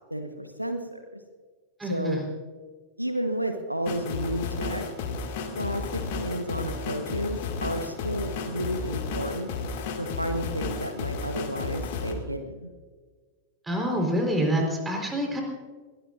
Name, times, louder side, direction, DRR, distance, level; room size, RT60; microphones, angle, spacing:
voice 1, 0.1-1.2 1.8-2.3 3.0-4.9 5.6-9.5 10.0-12.7, equal, 90° right, 6 dB, 1.2 m, -32 dB
voice 2, 1.8-2.2 13.7-15.4, equal, 10° right, 1 dB, 4.3 m, -26 dB
sound 1, 3.8-12.1, left 4 dB, 50° left, 2.2 m, -33 dB
22.0 x 17.5 x 2.6 m, 1.5 s
figure-of-eight pair, 90°, 0 cm